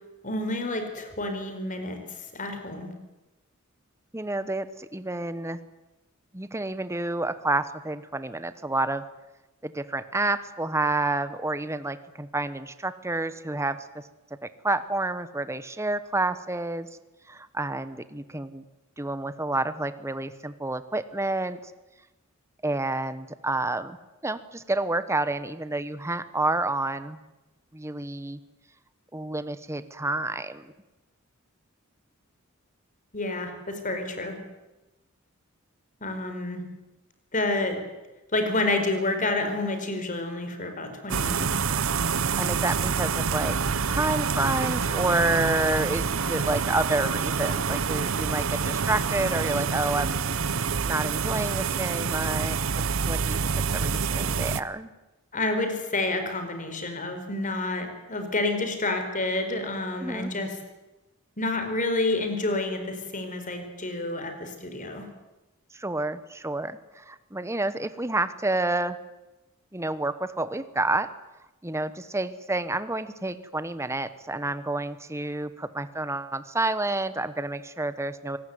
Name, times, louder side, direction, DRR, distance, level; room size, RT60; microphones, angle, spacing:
voice 1, 0.2-2.9 33.1-34.4 36.0-36.6 37.3-37.8 38.3-41.6 55.3-60.6 61.4-65.1, left 2 dB, 40° left, 7 dB, 4.6 m, -29 dB
voice 2, 4.1-5.6 6.3-9.0 9.6-14.0 14.4-16.9 17.3-18.6 19.0-21.6 22.6-24.0 24.2-27.2 27.7-28.4 29.1-30.7 42.4-43.6 43.9-50.2 50.8-52.6 53.0-54.9 60.0-60.3 65.7-69.0 69.7-71.1 71.6-78.4, right 2 dB, 15° right, 13 dB, 1.1 m, -29 dB
sound 1, 41.1-54.6, right 5 dB, 70° right, 0.9 m, -27 dB
24.5 x 19.0 x 9.5 m, 1.0 s
head